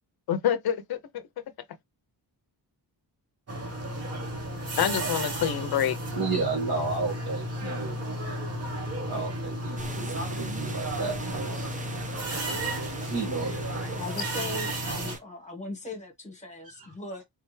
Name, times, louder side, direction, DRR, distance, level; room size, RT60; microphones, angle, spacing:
voice 1, 0.3-1.2 4.8-6.0, left 9 dB, 60° left, 0.7 m, -27 dB
sound 1, 3.5-15.2, right 1 dB, 35° right, 1.1 m, -33 dB
voice 2, 6.1-8.0 9.1-11.8 13.0-14.0 16.7-16.9, right 4 dB, 55° right, 1.9 m, -32 dB
sound 2, 9.8-15.2, right 3 dB, 20° right, 0.5 m, -42 dB
voice 3, 14.0-17.2, left 2 dB, 15° left, 1.2 m, -38 dB
3.4 x 3.4 x 3.2 m
wide cardioid pair, 170°, 43 cm